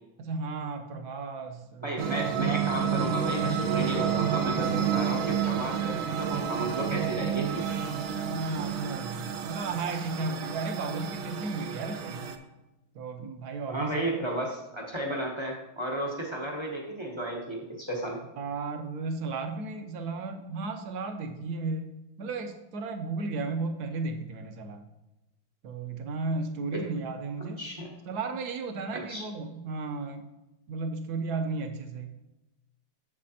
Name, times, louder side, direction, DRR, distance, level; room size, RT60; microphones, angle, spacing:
voice 1, 0.2-2.1 8.2-12.3 12.9-14.1 18.4-24.8 25.6-27.6 28.1-30.2 30.7-32.1, right 3 dB, 65° right, 5 dB, 1.1 m, -34 dB
voice 2, 1.8-7.7 13.7-18.2 26.7-26.8 27.4-27.9 28.9-29.2, right 1 dB, 35° right, -2 dB, 0.4 m, -33 dB
sound 1, 2.0-12.4, right 8 dB, 90° right, 1.5 m, -30 dB
7.5 x 7.3 x 2.8 m, 0.98 s
omnidirectional pair, 2.2 m